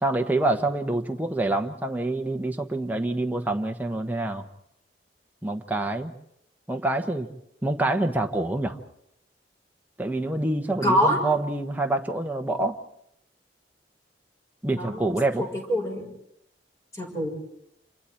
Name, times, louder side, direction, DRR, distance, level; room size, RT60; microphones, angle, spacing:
voice 1, 0.0-4.5 5.4-6.1 6.7-7.3 7.6-8.8 10.0-12.8 14.6-15.4, right 2 dB, 10° right, 3 dB, 1.1 m, -26 dB
voice 2, 10.8-11.2 14.7-15.2 15.7-16.0 16.9-17.3, equal, 20° left, 0 dB, 6.2 m, -24 dB
29.0 x 27.5 x 4.5 m, 0.76 s
head